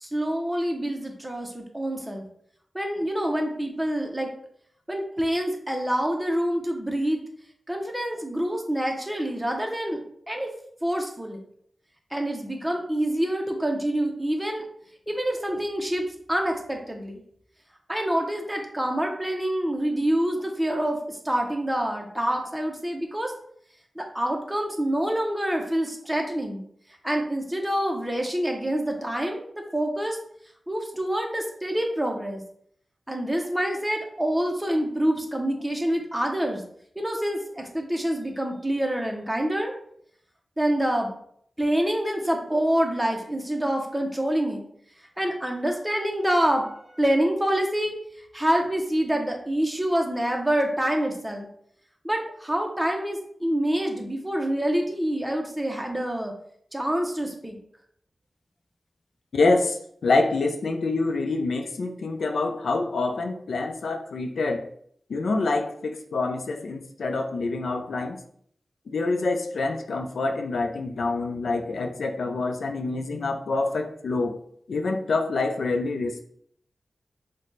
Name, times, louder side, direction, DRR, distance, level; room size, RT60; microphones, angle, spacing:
voice 1, 0.0-2.2 2.7-4.3 4.9-7.2 7.7-10.5 10.8-11.4 12.1-14.6 15.1-17.2 17.9-23.3 24.0-26.6 27.0-29.5 29.7-30.2 30.7-32.4 33.1-36.6 37.0-39.7 40.6-41.1 41.6-44.6 45.2-48.0 48.3-51.5 52.0-56.3 56.7-57.6, right 1 dB, 10° right, 2 dB, 0.6 m, -26 dB
voice 2, 59.3-64.7 65.1-68.2 68.9-74.4 74.7-76.2, left 3 dB, 90° left, 5 dB, 0.4 m, -26 dB
4.0 x 2.2 x 3.1 m, 0.65 s
wide cardioid pair, 80°, 0 cm